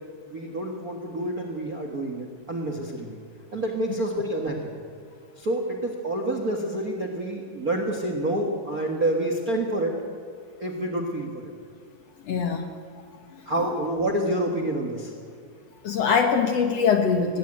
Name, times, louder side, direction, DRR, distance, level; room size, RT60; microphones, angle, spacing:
voice 1, 0.2-3.2 3.5-4.6 5.4-10.0 10.6-11.5 13.4-15.1, right 1 dB, 40° right, 4 dB, 1.3 m, -28 dB
voice 2, 12.3-12.7 13.3-13.8 15.8-17.4, left 6 dB, 65° left, 6 dB, 1.8 m, -23 dB
19.5 x 16.0 x 8.8 m, 2.1 s
omnidirectional pair, 3.9 m